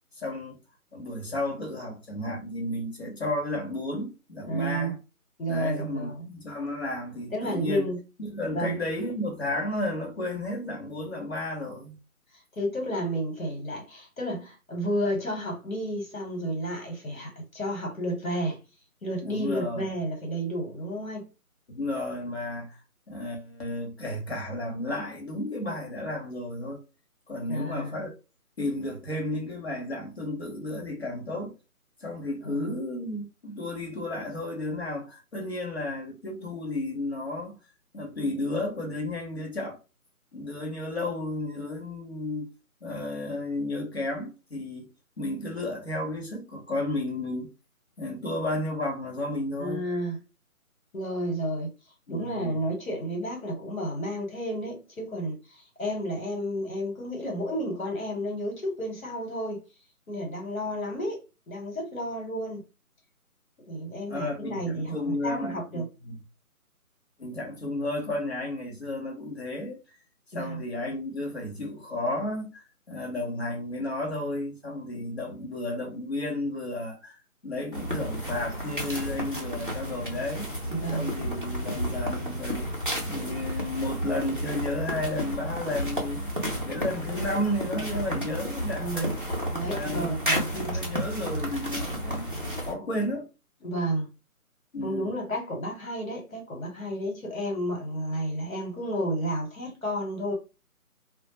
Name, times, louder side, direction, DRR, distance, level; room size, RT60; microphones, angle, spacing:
voice 1, 0.2-0.6 0.9-5.0 5.5-7.9 8.2-12.0 19.2-19.9 21.7-22.8 23.1-26.8 27.3-28.1 28.6-31.5 32.0-37.6 37.9-39.8 40.3-42.5 42.8-44.9 45.2-47.5 48.0-49.9 52.1-52.6 64.1-66.2 67.2-69.8 70.3-80.5 80.9-82.7 83.1-86.3 86.7-89.2 89.7-92.3 92.6-93.3 94.7-95.1, left 1 dB, 45° left, 0.9 m, -33 dB
voice 2, 4.5-4.9 5.4-6.2 7.3-8.0 8.5-8.8 12.6-18.6 19.0-21.2 27.5-27.9 32.4-32.7 49.6-50.2 50.9-51.7 52.1-59.6 60.1-62.6 63.6-65.8 70.3-70.6 80.7-81.1 88.8-89.1 89.5-90.5 93.6-94.1 94.8-100.3, right 1 dB, 65° left, 1.3 m, -31 dB
sound 1, 77.7-92.7, equal, 35° right, 0.5 m, -32 dB
2.2 x 2.1 x 2.9 m
figure-of-eight pair, 175°, 44 cm